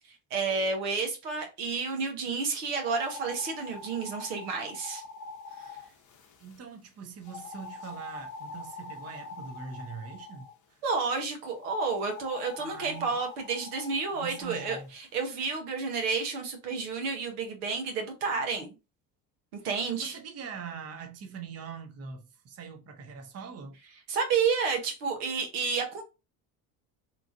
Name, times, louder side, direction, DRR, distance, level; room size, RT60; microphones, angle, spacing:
voice 1, 0.3-5.0 5.6-5.7 10.8-18.7 19.5-20.2 24.1-26.0, right 5 dB, 85° right, 1.0 m, -30 dB
sound 1, 2.7-6.6 7.2-10.5 11.6-14.8, left 4 dB, 40° left, 0.8 m, -44 dB
voice 2, 6.4-10.8 12.6-13.2 14.1-14.9 19.7-23.8, right 6 dB, 35° right, 0.8 m, -43 dB
2.9 x 2.4 x 2.6 m
hypercardioid pair, 75°, 44 cm